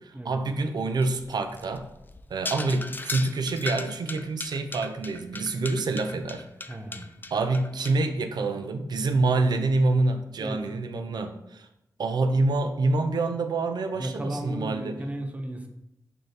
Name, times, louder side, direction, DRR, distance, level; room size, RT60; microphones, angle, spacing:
voice 1, 0.0-1.9 2.3-6.4 7.3-11.7 12.0-15.0, right 3 dB, 70° right, 7 dB, 0.4 m, -26 dB
sound 1, 1.0-7.9, left 3 dB, 25° left, 0.3 m, -37 dB
voice 2, 6.7-7.2 10.4-10.7 14.0-15.7, right 1 dB, 20° right, 4 dB, 0.6 m, -35 dB
3.1 x 2.7 x 4.0 m, 0.85 s
cardioid pair, 45°, 7 cm